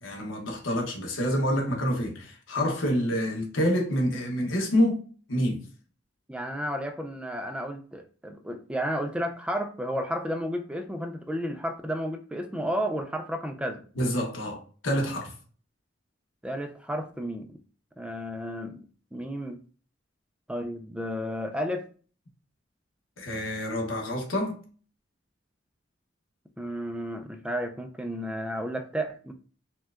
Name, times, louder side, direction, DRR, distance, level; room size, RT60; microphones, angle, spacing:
voice 1, 0.0-5.0 5.3-5.6 14.0-15.3 23.2-24.6, equal, 80° left, 0.9 m, -27 dB
voice 2, 6.3-13.9 16.4-17.6 18.0-18.9 19.1-19.6 20.5-21.9 26.6-29.3, equal, 5° right, 0.3 m, -32 dB
4.3 x 2.2 x 2.4 m
head